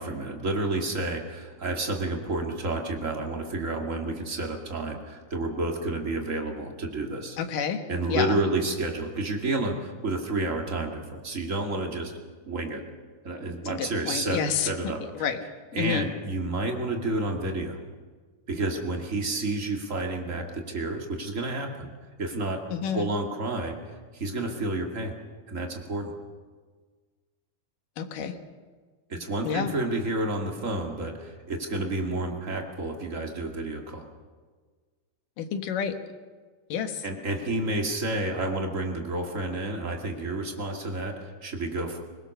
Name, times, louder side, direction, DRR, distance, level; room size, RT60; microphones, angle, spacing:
voice 1, 0.0-7.4 7.9-12.1 12.5-12.8 13.2-15.0 15.7-17.8 18.5-21.9 22.2-23.8 24.1-25.1 25.5-26.1 29.1-34.0 37.0-42.0, right 2 dB, 25° right, 2 dB, 2.1 m, -30 dB
voice 2, 7.4-7.8 8.1-8.4 13.7-14.7 15.2-15.4 15.8-16.1 22.7-23.1 28.0-28.4 29.5-29.7 35.4-36.0 36.7-37.0, left 7 dB, 70° left, 7 dB, 3.0 m, -29 dB
22.5 x 20.5 x 6.6 m, 1.5 s
omnidirectional pair, 4.1 m